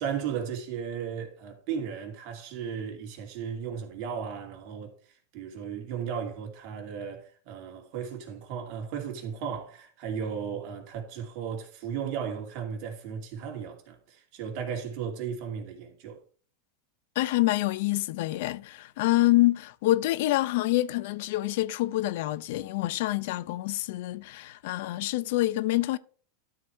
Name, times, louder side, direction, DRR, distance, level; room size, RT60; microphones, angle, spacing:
voice 1, 0.0-16.2, right 7 dB, 50° right, 2.6 m, -35 dB
voice 2, 17.2-26.0, left 17 dB, 65° left, 0.6 m, -26 dB
12.5 x 4.7 x 4.4 m
supercardioid pair, 135°, 0 cm